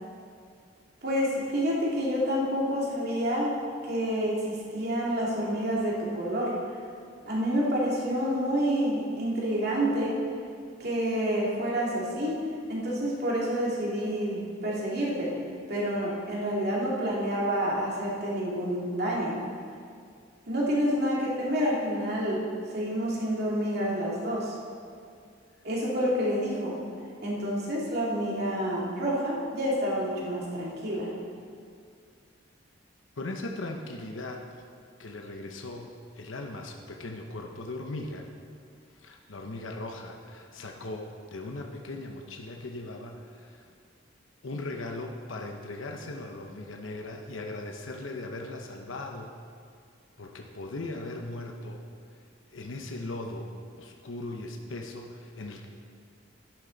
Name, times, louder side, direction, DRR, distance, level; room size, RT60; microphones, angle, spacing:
voice 1, 1.0-3.5 3.8-6.5 7.3-10.2 10.8-12.4 12.7-15.4 15.7-19.4 20.5-24.5 25.6-26.8 27.2-31.1, equal, 55° right, -5 dB, 2.5 m, -28 dB
voice 2, 33.2-34.6 35.0-38.3 39.0-43.7 44.4-49.3 50.2-51.8 52.5-53.5 53.8-55.7, left 2 dB, 80° left, 2 dB, 0.9 m, -38 dB
11.5 x 10.5 x 4.0 m, 2.3 s
head